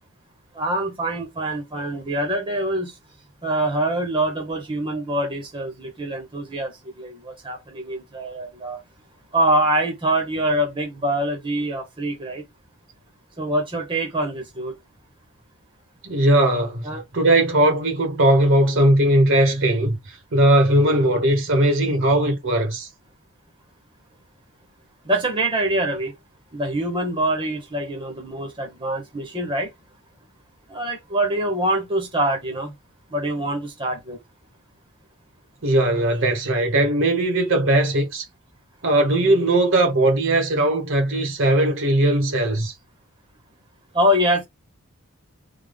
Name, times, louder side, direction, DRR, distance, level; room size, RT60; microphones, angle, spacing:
voice 1, 0.5-3.0 3.4-8.8 9.3-12.4 13.4-14.8 16.8-17.0 20.8-21.0 25.0-26.1 26.5-29.7 30.7-32.7 33.1-34.2 43.9-44.4, right 1 dB, 25° right, 1.0 m, -24 dB
voice 2, 16.0-22.9 35.6-38.2 38.8-42.7, right 1 dB, 60° right, 1.2 m, -19 dB
3.5 x 2.3 x 3.5 m
head